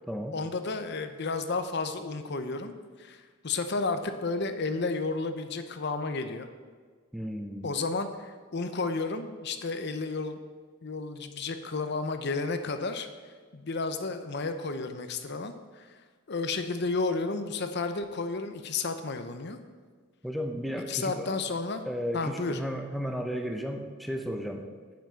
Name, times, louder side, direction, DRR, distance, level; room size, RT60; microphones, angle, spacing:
voice 1, 0.3-2.7 3.0-6.5 7.6-10.4 10.8-13.1 13.5-16.0 16.3-19.6 20.9-21.8 22.1-22.6, left 3 dB, 50° left, 8 dB, 0.7 m, -32 dB
voice 2, 7.1-7.7 20.2-21.4 21.8-24.7, equal, ahead, 4 dB, 0.6 m, -34 dB
8.6 x 5.9 x 7.6 m, 1.5 s
head